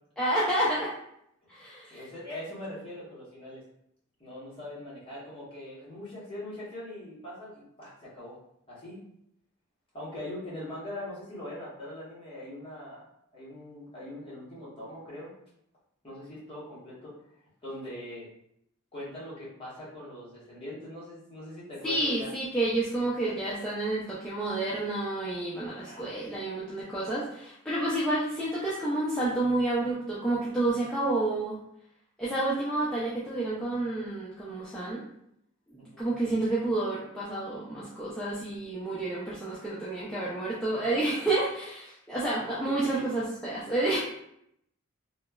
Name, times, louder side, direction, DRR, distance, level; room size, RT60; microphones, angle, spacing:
voice 1, 0.2-0.9 1.5-2.0 21.8-31.6 32.2-35.0 35.7-44.0, right 2 dB, 5° left, -9 dB, 0.3 m, -29 dB
voice 2, 1.9-3.6 4.2-8.4 8.7-9.0 9.9-13.0 13.3-15.3 16.0-17.1 17.6-18.3 18.9-22.3 23.3-23.6 25.9-26.0 35.8-36.1 42.6-43.0, left 1 dB, 25° left, -8 dB, 0.9 m, -42 dB
3.0 x 2.0 x 2.2 m, 0.75 s
head